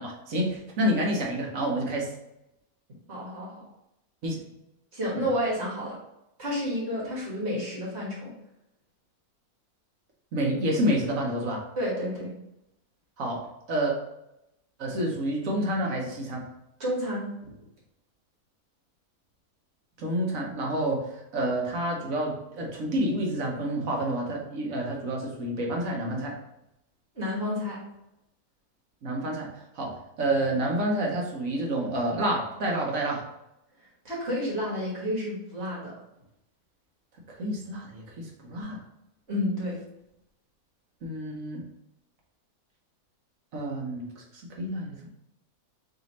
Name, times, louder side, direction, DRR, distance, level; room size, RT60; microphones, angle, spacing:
voice 1, 0.0-2.1 4.2-4.4 5.1-5.3 10.3-11.6 13.2-13.9 14.8-16.4 20.0-26.4 29.0-29.5 29.7-33.3 37.3-38.8 41.0-41.6 43.5-45.1, right 1 dB, 65° right, -1 dB, 1.3 m, -29 dB
voice 2, 3.1-3.7 4.9-6.0 6.4-8.3 11.8-12.3 16.8-17.5 27.2-27.8 34.1-35.9 39.3-39.8, equal, 45° right, -5 dB, 1.7 m, -30 dB
3.4 x 3.1 x 4.0 m, 0.86 s
omnidirectional pair, 1.5 m